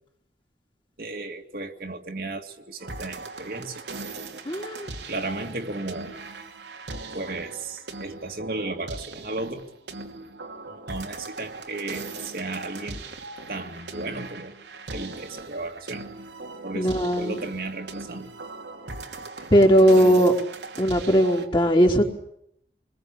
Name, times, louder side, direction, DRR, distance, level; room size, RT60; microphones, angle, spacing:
voice 1, 1.0-3.9 5.1-6.2 7.1-9.7 10.7-13.0 13.5-14.6 14.9-16.1 16.6-18.3 19.8-20.2, right 2 dB, 55° right, 3 dB, 2.3 m, -34 dB
sound 1, 2.8-21.5, right 3 dB, 85° right, 2.8 m, -39 dB
voice 2, 4.4-4.9 16.7-17.4 19.5-20.3 20.8-22.0, equal, 25° left, 1 dB, 3.7 m, -18 dB
27.0 x 21.5 x 8.7 m, 0.76 s
head